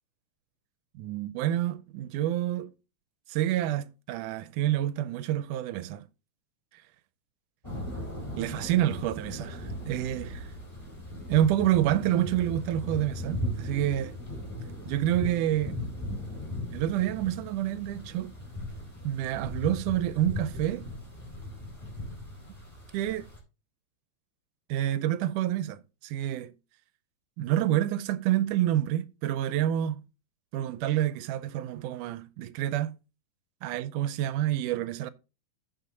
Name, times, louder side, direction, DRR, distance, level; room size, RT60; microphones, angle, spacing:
voice 1, 1.0-2.7 3.3-6.1 8.4-10.5 11.3-14.2 14.9-15.8 16.7-18.3 19.0-20.9 22.9-23.3 24.7-26.5 27.4-30.0 30.5-33.0 33.6-35.1, right 12 dB, 85° right, 2.2 m, -28 dB
sound 1, 7.6-23.4, left 1 dB, 10° left, 4.4 m, -38 dB
14.0 x 5.5 x 2.8 m
omnidirectional pair, 3.5 m